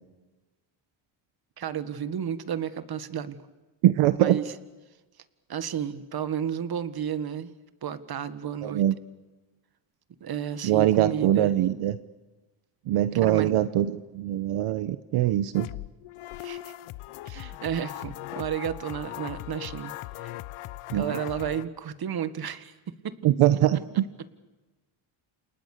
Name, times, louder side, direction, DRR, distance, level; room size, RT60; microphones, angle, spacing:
voice 1, 1.6-3.4 4.2-4.4 5.5-7.6 7.8-8.8 10.2-11.5 13.1-13.5 16.4-16.7 17.3-19.9 20.2-20.3 20.9-23.2, right 8 dB, 45° right, 12 dB, 1.9 m, -32 dB
voice 2, 3.8-4.4 8.6-8.9 10.6-12.0 12.9-15.7 20.9-21.1 23.2-23.8, right 13 dB, 80° right, 12 dB, 1.1 m, -22 dB
sound 1, 15.5-21.6, left 16 dB, 80° left, 1.0 m, -39 dB
29.5 x 29.0 x 6.8 m, 1.2 s
cardioid pair, 110°, 49 cm